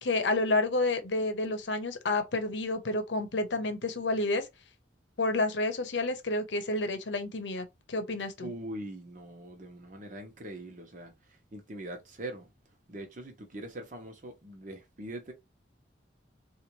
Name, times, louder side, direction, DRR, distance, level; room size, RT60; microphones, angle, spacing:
voice 1, 0.0-4.5 5.2-8.5, left 2 dB, 75° left, 0.8 m, -30 dB
voice 2, 8.4-12.5 12.9-15.3, right 1 dB, 45° right, 0.9 m, -42 dB
3.9 x 2.5 x 3.0 m
head